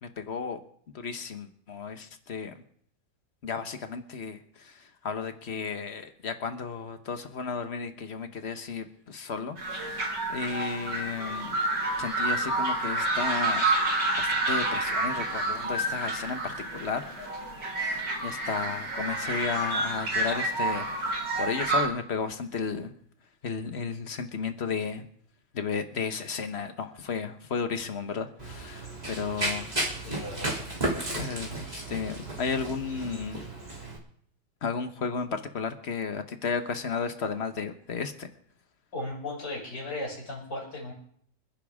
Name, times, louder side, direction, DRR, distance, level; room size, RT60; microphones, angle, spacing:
voice 1, 0.0-0.6 0.9-2.5 3.4-11.6 12.0-13.6 14.2-17.3 17.8-22.9 23.4-25.0 25.5-29.7 31.1-33.4 34.6-38.3, left 5 dB, 40° left, 8 dB, 1.2 m, -34 dB
sound 1, 9.6-21.8, right 2 dB, 60° right, 3.8 m, -29 dB
Run, 28.4-34.0, right 1 dB, 20° right, 3.2 m, -34 dB
voice 2, 30.0-30.7 38.9-40.9, left 2 dB, 60° left, -2 dB, 6.7 m, -36 dB
26.5 x 10.5 x 3.6 m, 0.63 s
omnidirectional pair, 2.1 m